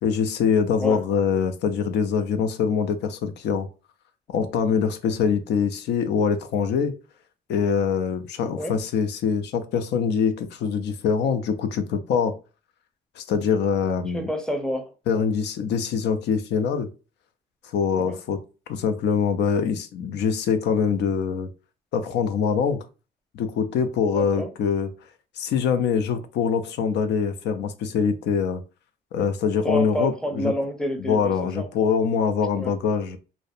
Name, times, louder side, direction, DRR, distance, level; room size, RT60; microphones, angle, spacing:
voice 1, 0.0-3.7 4.3-6.9 7.5-12.3 13.2-14.3 15.1-16.9 17.6-18.4 18.7-21.5 21.9-22.8 23.3-24.9 25.4-28.6 29.1-30.5 31.0-33.2, left 6 dB, 85° left, 0.4 m, -24 dB
voice 2, 14.1-14.9 18.0-18.2 24.1-24.5 29.6-31.7 32.6-32.7, equal, 5° left, 0.5 m, -28 dB
2.5 x 2.1 x 2.4 m
cardioid pair, 90°, 17 cm